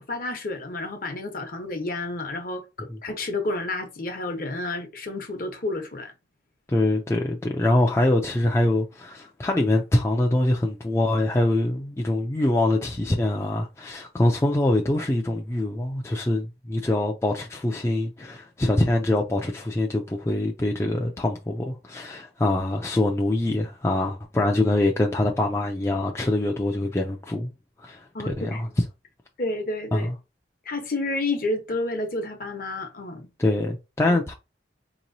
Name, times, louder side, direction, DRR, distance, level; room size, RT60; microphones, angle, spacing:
voice 1, 0.1-6.1 28.1-28.6 29.4-30.1 30.7-33.3 34.0-34.2, left 2 dB, 50° left, 0.9 m, -30 dB
voice 2, 6.7-27.5 27.8-28.7 29.9-30.1 33.4-34.3, left 1 dB, 15° left, 0.3 m, -24 dB
4.6 x 2.9 x 2.6 m
head